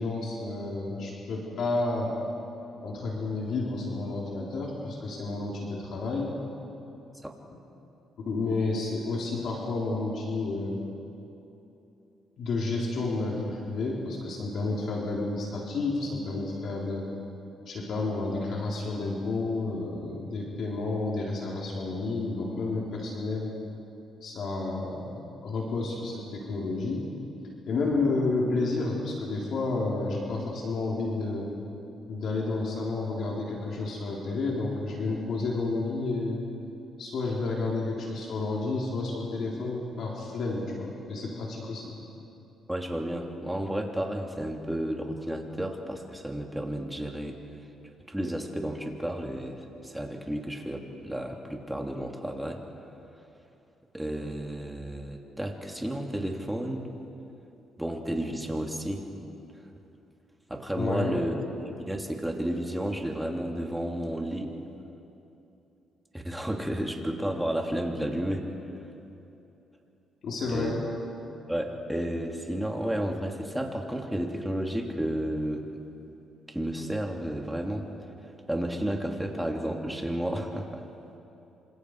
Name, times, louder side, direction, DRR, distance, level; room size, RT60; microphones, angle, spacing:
voice 1, 0.0-2.1 2.8-6.3 8.2-10.8 12.4-17.1 17.7-23.5 24.2-27.1 27.7-31.5 32.1-36.4 37.0-42.0 60.8-61.3 70.2-70.7, left 3 dB, 65° left, -3 dB, 4.1 m, -31 dB
voice 2, 42.7-47.3 48.1-49.6 49.8-52.6 53.9-56.8 57.8-59.1 60.5-61.3 61.6-64.5 66.1-68.5 70.5-70.7 71.5-75.7 76.5-77.9 78.5-80.8, right 1 dB, 5° right, 1 dB, 3.1 m, -32 dB
28.0 x 26.5 x 5.0 m, 2.9 s
cardioid pair, 90°, 0 cm